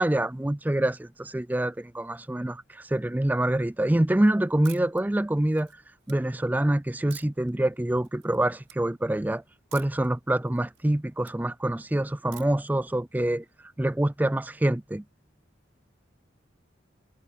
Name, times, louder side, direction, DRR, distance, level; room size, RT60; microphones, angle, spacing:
voice 1, 0.0-5.7 6.1-9.4 9.7-13.4 13.8-15.0, right 1 dB, 10° right, 0.3 m, -26 dB
sound 1, 4.6-5.0 5.5-6.1 7.1-7.5 8.0-8.4 8.6-8.8 9.7-10.1 10.4-11.4 12.3-12.7, right 14 dB, 80° right, 6.3 m, -48 dB
head